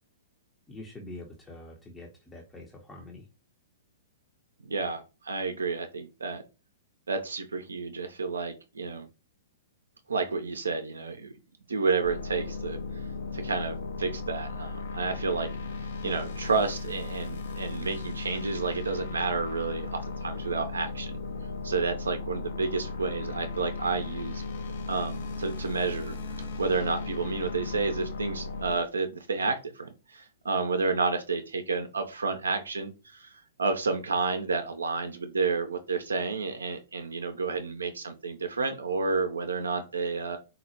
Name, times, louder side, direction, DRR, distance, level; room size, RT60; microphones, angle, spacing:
voice 1, 0.7-3.3, left 1 dB, 15° left, 0 dB, 0.5 m, -45 dB
voice 2, 4.6-6.4 7.1-9.1 10.1-11.3 11.7-13.1 13.3-15.5 15.8-21.2 21.6-24.4 24.9-33.3 33.6-40.4, right 4 dB, 80° right, 7 dB, 0.4 m, -30 dB
sound 1, 12.0-28.8, left 3 dB, 65° left, 0.5 m, -36 dB
3.9 x 2.0 x 2.7 m, 0.30 s
figure-of-eight pair, 115°, 0 cm